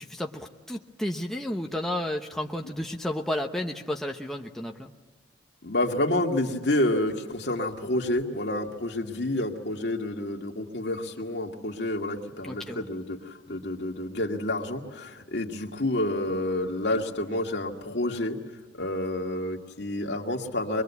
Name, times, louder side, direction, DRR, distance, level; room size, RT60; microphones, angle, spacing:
voice 1, 0.0-4.9 12.4-12.9, left 1 dB, ahead, 1 dB, 0.9 m, -32 dB
voice 2, 5.6-18.4 18.8-20.8, left 1 dB, 65° left, 1 dB, 2.1 m, -29 dB
24.5 x 22.0 x 8.3 m, 1.3 s
head